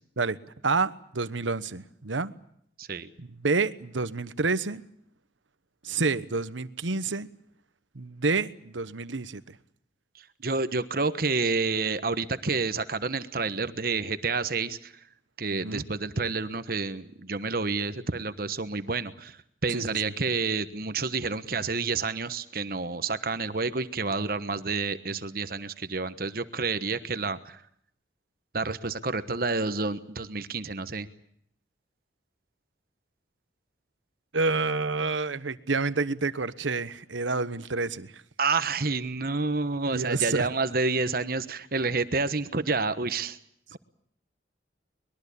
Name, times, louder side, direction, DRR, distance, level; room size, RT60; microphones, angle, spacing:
voice 1, 0.6-2.3 3.2-4.8 5.8-7.3 7.9-9.6 15.5-15.8 19.7-20.1 34.3-38.2 39.9-40.5 43.7-43.8, right 3 dB, 90° right, 1.1 m, -29 dB
voice 2, 10.4-14.9 15.4-19.3 19.6-27.6 28.5-31.1 38.4-43.4 43.7-43.8, right 4 dB, 50° right, 1.2 m, -29 dB
23.0 x 21.5 x 8.5 m
head